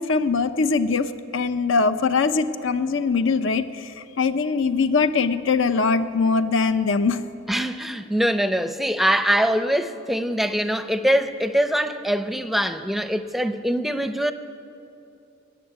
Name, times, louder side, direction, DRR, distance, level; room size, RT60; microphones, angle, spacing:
voice 1, 0.0-7.2, left 4 dB, 70° left, 11 dB, 0.6 m, -22 dB
voice 2, 7.5-14.3, equal, ahead, 10 dB, 0.5 m, -23 dB
18.5 x 7.1 x 9.3 m, 2.8 s
head